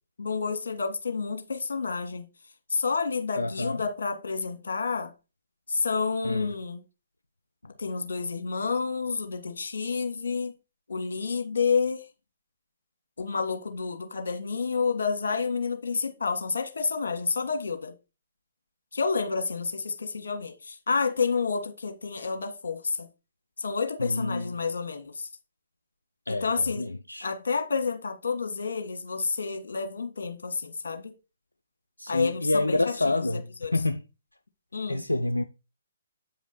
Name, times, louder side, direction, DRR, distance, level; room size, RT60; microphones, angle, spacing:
voice 1, 0.2-2.2 2.7-5.1 5.7-6.8 7.8-10.5 10.9-12.1 13.2-17.9 18.9-23.1 23.6-25.3 26.3-26.9 27.2-31.1 32.1-33.7 34.7-35.0, left 5 dB, 60° left, 1.7 m, -29 dB
voice 2, 3.4-3.8 6.2-6.5 24.0-24.5 26.3-27.3 32.0-34.0 34.9-35.4, left 2 dB, 85° left, 0.5 m, -28 dB
8.2 x 5.0 x 4.1 m
figure-of-eight pair, 130°, 0 cm